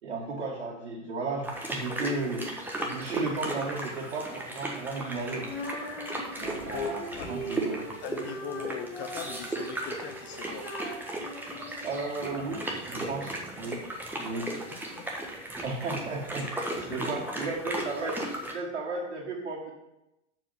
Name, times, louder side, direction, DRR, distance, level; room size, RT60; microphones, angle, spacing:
voice 1, 0.0-2.4 2.8-5.5 6.3-7.8 11.8-13.8 14.2-14.5 15.6-16.5 16.9-18.2 18.5-19.7, right 3 dB, 65° right, -4 dB, 1.9 m, -34 dB
sound 1, 1.4-18.5, right 1 dB, 5° right, 1.3 m, -36 dB
Female singing, 5.4-12.4, equal, 65° left, 3.1 m, -41 dB
voice 2, 8.0-10.7 14.5-15.1 16.7-17.3, left 8 dB, 30° left, 7 dB, 0.6 m, -40 dB
6.9 x 5.2 x 7.0 m, 0.90 s
figure-of-eight pair, 90°, 37 cm